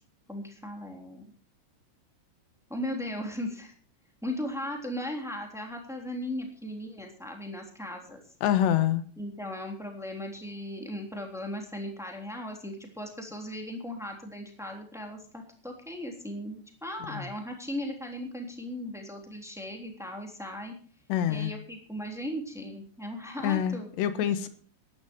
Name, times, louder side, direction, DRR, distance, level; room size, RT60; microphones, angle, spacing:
voice 1, 0.3-1.2 2.7-3.7 4.2-8.2 9.2-20.7 21.3-23.9, left 1 dB, ahead, 2 dB, 2.2 m, -37 dB
voice 2, 8.4-9.0 17.1-17.3 21.1-21.6 23.4-24.5, left 10 dB, 70° left, 11 dB, 3.2 m, -26 dB
16.0 x 11.5 x 4.6 m, 0.43 s
omnidirectional pair, 5.6 m